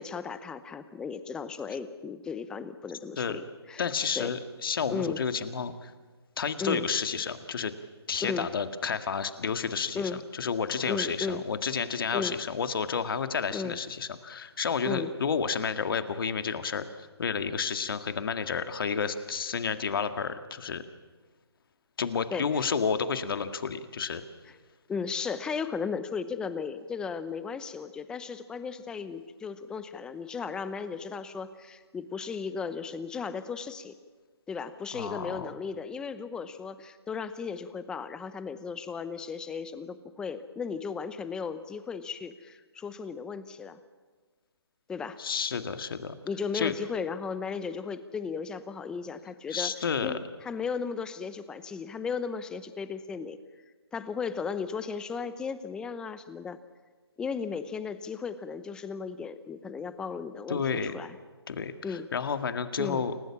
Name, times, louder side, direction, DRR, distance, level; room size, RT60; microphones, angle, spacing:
voice 1, 0.0-3.8 4.2-4.3 4.9-5.2 6.6-6.9 8.2-8.5 9.9-10.2 10.9-11.4 12.1-12.4 13.5-13.8 14.9-15.1 22.3-22.6 24.9-33.9 34.5-43.8 44.9-45.2 46.3-49.7 50.0-53.4 53.9-56.6 57.2-61.2 61.8-62.1 62.8-63.0, left 5 dB, 5° left, 13 dB, 0.7 m, -35 dB
voice 2, 3.8-5.9 6.4-7.7 8.1-10.0 10.3-20.8 22.0-24.2 34.9-35.5 45.2-46.1 46.5-46.7 49.5-50.2 60.5-60.9 61.5-63.1, left 6 dB, 55° left, 9 dB, 1.9 m, -31 dB
29.0 x 17.0 x 7.3 m, 1.4 s
hypercardioid pair, 155°, 14 cm